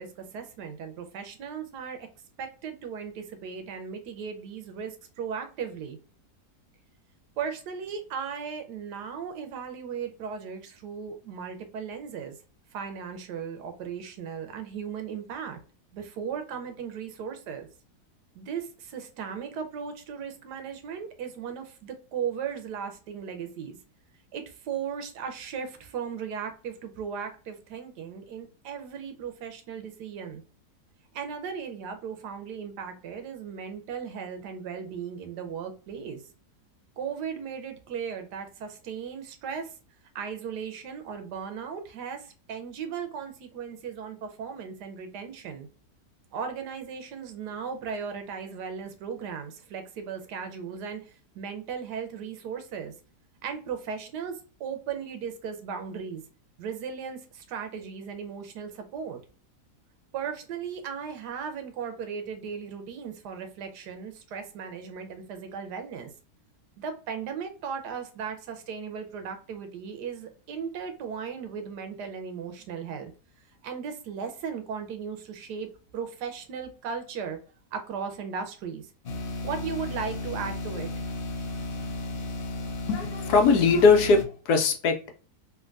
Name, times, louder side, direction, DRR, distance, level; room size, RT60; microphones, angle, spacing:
voice 1, 0.0-2.1 2.4-6.0 7.4-12.3 12.7-15.6 15.9-17.7 18.3-23.8 24.3-30.4 31.1-36.2 37.0-39.7 40.1-42.2 42.5-45.7 46.3-51.0 51.3-52.9 53.4-56.2 56.6-59.2 60.1-66.1 66.8-73.1 73.6-75.7 75.9-77.4 77.7-78.9 79.4-80.9, right 6 dB, 85° right, 6 dB, 1.3 m, -36 dB
sound 1, 79.0-84.2, left 2 dB, 55° left, 0.6 m, -34 dB
voice 2, 82.9-85.1, left 4 dB, 75° left, 4 dB, 1.2 m, -20 dB
3.4 x 2.5 x 2.4 m, 0.38 s
omnidirectional pair, 1.7 m